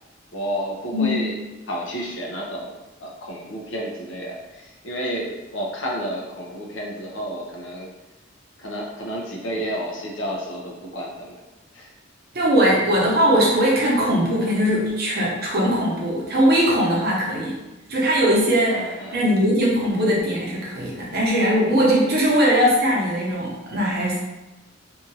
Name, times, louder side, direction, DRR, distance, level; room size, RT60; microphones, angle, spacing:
voice 1, 0.3-1.3 1.7-7.9 8.6-11.4 11.7-11.9 16.9-17.1 18.7-19.2 22.0-22.2, equal, 75° left, -2 dB, 0.7 m, -31 dB
voice 2, 0.9-1.4 12.3-17.6 17.9-24.2, equal, 55° right, -4 dB, 0.8 m, -20 dB
2.7 x 2.4 x 2.8 m, 1.0 s
head